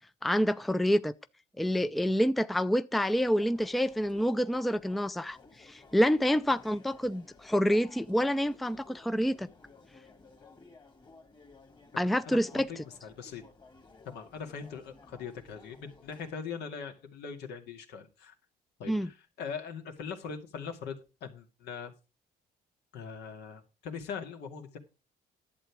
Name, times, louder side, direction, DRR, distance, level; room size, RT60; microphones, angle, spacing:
voice 1, 0.2-1.1 1.6-9.5 12.0-12.7 18.9-19.1, equal, ahead, 0.4 m, -27 dB
sound 1, 2.9-16.3, left 3 dB, 25° left, 2.0 m, -56 dB
voice 2, 11.9-13.4 14.1-18.3 18.8-21.9 22.9-24.8, left 6 dB, 80° left, 2.3 m, -41 dB
11.0 x 7.8 x 4.8 m
cardioid pair, 110°, 17 cm